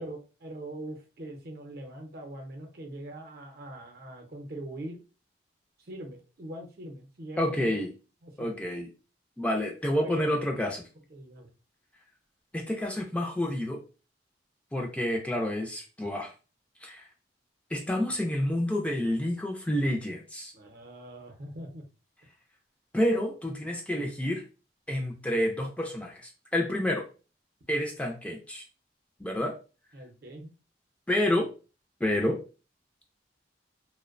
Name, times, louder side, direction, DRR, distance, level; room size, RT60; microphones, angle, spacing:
voice 1, 0.0-5.0 5.8-7.8 8.2-8.6 10.0-10.6 11.1-11.5 20.5-21.8 29.9-30.5, right 1 dB, 60° right, 3 dB, 0.6 m, -42 dB
voice 2, 7.4-7.9 8.4-8.9 9.4-10.8 12.5-13.8 14.7-16.3 16.8-17.1 17.7-20.5 22.9-24.4 24.9-27.1 27.7-28.6 29.2-29.5 31.1-31.5 32.0-32.4, left 1 dB, 5° left, 1 dB, 0.3 m, -29 dB
2.6 x 2.1 x 2.4 m, 0.33 s
head